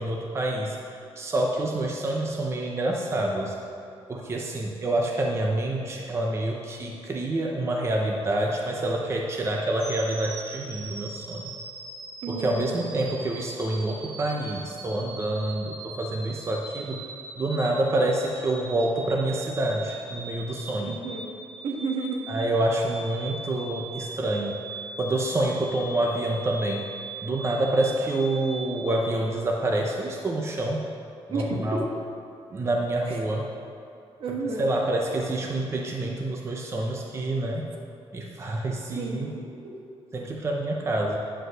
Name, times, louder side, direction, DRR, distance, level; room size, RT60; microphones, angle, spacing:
voice 1, 0.0-3.5 4.1-11.5 12.3-17.0 17.4-21.0 22.3-24.6 25.0-26.9 27.2-30.9 31.3-31.8 32.5-33.5 34.3-37.6 38.1-39.4 40.1-41.2, right 1 dB, 25° right, 0 dB, 0.7 m, -27 dB
sound 1, 9.8-29.2, right 2 dB, 80° right, 1.4 m, -41 dB
voice 2, 12.2-12.7 20.8-22.2 31.3-31.8 33.1-33.2 34.2-34.7 38.9-39.5, right 3 dB, 65° right, 0 dB, 1.5 m, -32 dB
10.0 x 5.3 x 6.2 m, 2.6 s
cardioid pair, 145°, 10 cm